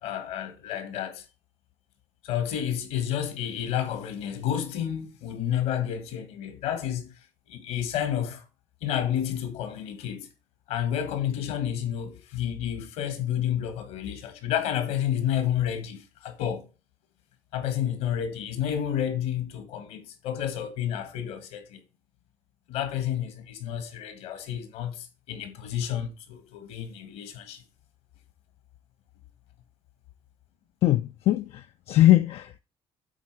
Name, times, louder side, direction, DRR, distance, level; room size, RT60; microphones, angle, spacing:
voice 1, 0.0-1.2 2.2-7.1 7.5-8.4 8.8-10.3 10.7-16.7 17.5-21.8 22.7-27.6, left 10 dB, 85° left, 1.7 m, -30 dB
voice 2, 30.8-32.6, left 14 dB, 65° left, 0.4 m, -21 dB
8.5 x 3.9 x 4.8 m
supercardioid pair, 70°, 11 cm